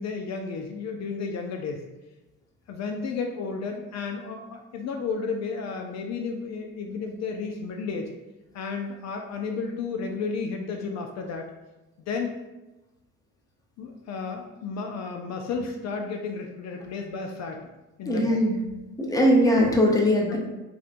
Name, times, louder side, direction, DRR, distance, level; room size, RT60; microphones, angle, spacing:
voice 1, 0.0-1.8 2.7-8.1 8.5-11.5 12.1-12.3 13.8-17.7 18.0-18.4 20.3-20.4, left 4 dB, 60° left, 3 dB, 0.4 m, -32 dB
voice 2, 18.0-18.6 19.0-20.4, equal, 10° left, 0 dB, 0.6 m, -20 dB
4.2 x 2.1 x 2.5 m, 1.0 s
cardioid pair, 90°, 30 cm